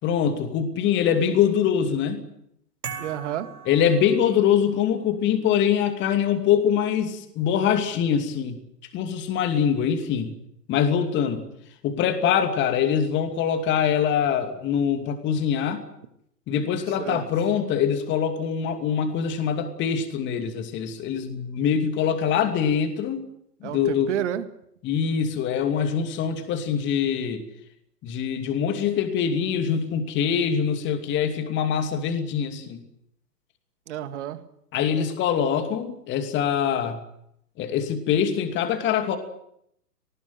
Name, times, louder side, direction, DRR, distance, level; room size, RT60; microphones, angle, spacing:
voice 1, 0.0-2.2 3.7-8.6 8.9-10.3 10.7-11.4 11.8-15.8 16.5-23.3 23.6-24.1 24.8-27.4 28.0-32.8 34.7-37.0 37.6-39.2, left 8 dB, 25° left, 7 dB, 2.7 m, -24 dB
sound 1, 2.8-4.7, right 6 dB, 70° right, 4.4 m, -39 dB
voice 2, 3.0-3.5 17.0-17.2 23.6-24.5 33.9-34.4, right 11 dB, 45° right, 10 dB, 2.1 m, -30 dB
19.5 x 19.5 x 9.3 m, 0.74 s
figure-of-eight pair, 120°, 48 cm